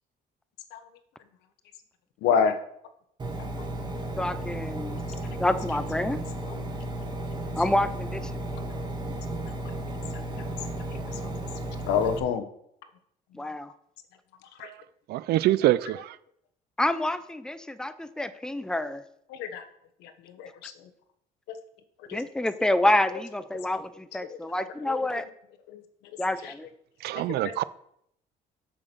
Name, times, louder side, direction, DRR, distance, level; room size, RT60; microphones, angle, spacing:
voice 1, 2.2-2.5 6.5-6.6 11.9-12.5 14.6-14.7 19.3-19.6 20.0-20.7 21.5-21.6 22.1-22.2 23.1-23.2 24.3-24.4 24.8-25.0 25.7-25.8 26.4-26.5 27.1-27.2, left 7 dB, 90° left, 1.1 m, -27 dB
Engine, 3.2-12.2, right 1 dB, 25° right, 2.0 m, -34 dB
voice 2, 4.2-5.0 5.4-6.2 7.6-8.4 13.3-13.7 16.8-19.0 22.1-25.2 26.2-26.7, left 1 dB, 5° left, 0.7 m, -27 dB
voice 3, 15.1-16.2 27.0-27.6, right 15 dB, 70° right, 0.5 m, -25 dB
7.4 x 6.0 x 6.8 m
cardioid pair, 110°, 17 cm